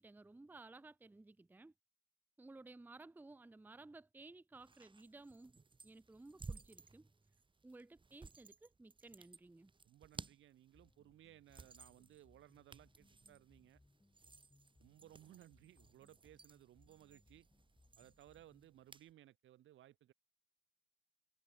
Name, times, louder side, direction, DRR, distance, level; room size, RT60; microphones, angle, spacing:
voice 1, 0.0-1.7 2.4-5.6 5.8-7.1 7.6-9.7, right 2 dB, 10° right, 0.6 m, -57 dB
sound 1, 4.6-19.1, right 4 dB, 25° right, 2.2 m, -58 dB
voice 2, 9.8-13.8 14.8-17.5 18.0-20.1, right 13 dB, 80° right, 3.4 m, -62 dB
sound 2, 10.7-18.8, left 2 dB, 15° left, 6.8 m, -72 dB
cardioid pair, 90°, 20 cm